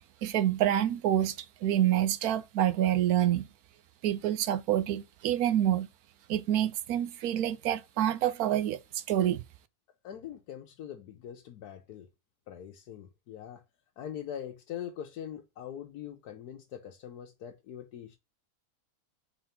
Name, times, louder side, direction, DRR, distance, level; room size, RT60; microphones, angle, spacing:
voice 1, 0.2-1.4 1.6-3.5 4.0-5.9 6.3-9.4, right 11 dB, 75° right, 1.1 m, -27 dB
voice 2, 10.0-12.1 12.5-13.6 14.0-18.2, left 9 dB, 90° left, 1.3 m, -42 dB
4.2 x 4.1 x 5.6 m
omnidirectional pair, 1.6 m